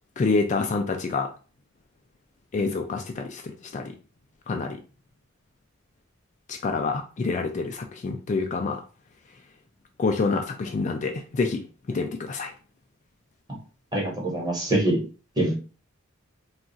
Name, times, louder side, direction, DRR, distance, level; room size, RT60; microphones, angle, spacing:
voice 1, 0.2-1.3 2.5-3.9 4.5-4.8 6.5-8.8 10.0-11.6 11.9-12.5, left 4 dB, 35° left, 5 dB, 0.3 m, -27 dB
voice 2, 13.9-15.0 15.4-15.6, right 1 dB, 20° right, -2 dB, 1.1 m, -24 dB
2.4 x 2.3 x 3.9 m, 0.36 s
head